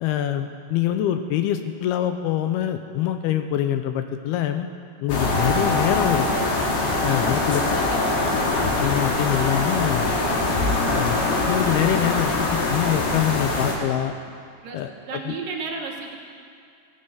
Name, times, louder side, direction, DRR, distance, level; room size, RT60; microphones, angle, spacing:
voice 1, 0.0-4.7 5.0-6.3 7.0-8.1 8.6-10.2 10.9-14.1 14.7-15.4, left 11 dB, 80° left, 7 dB, 2.5 m, -25 dB
sound 1, 5.1-13.8, left 2 dB, 60° left, 3.5 m, -23 dB
voice 2, 7.4-8.5 14.6-14.8 15.1-16.2, right 4 dB, 65° right, 1 dB, 2.7 m, -34 dB
17.0 x 9.7 x 7.9 m, 2.4 s
omnidirectional pair, 4.7 m